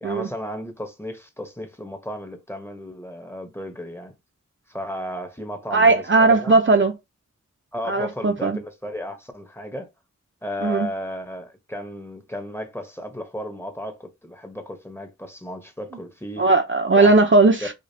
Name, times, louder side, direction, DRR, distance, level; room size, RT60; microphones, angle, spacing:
voice 1, 0.0-4.1 4.7-6.6 7.7-9.9 10.4-16.4 17.0-17.2 17.6-17.7, equal, 10° left, 0.9 m, -34 dB
voice 2, 5.7-6.9 7.9-8.6 10.6-10.9 16.4-17.7, right 3 dB, 40° right, 0.6 m, -17 dB
5.0 x 2.3 x 2.7 m
wide cardioid pair, 70°, 30 cm